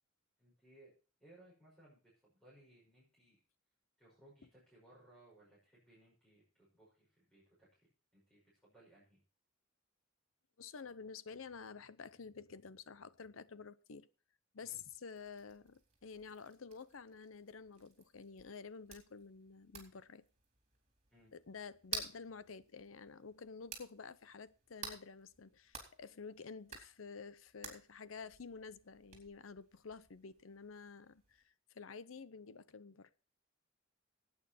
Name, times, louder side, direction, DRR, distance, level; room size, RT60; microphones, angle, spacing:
voice 1, 0.4-0.9 1.2-3.4 4.0-7.7 8.1-9.2 14.6-14.8 21.1-21.3, right 1 dB, 5° left, 5.8 m, -64 dB
voice 2, 10.6-14.1 14.5-20.2 21.3-31.4 31.7-33.1, left 5 dB, 80° left, 0.7 m, -50 dB
sound 1, 15.1-31.5, right 5 dB, 35° right, 4.0 m, -53 dB
16.0 x 8.9 x 4.3 m
head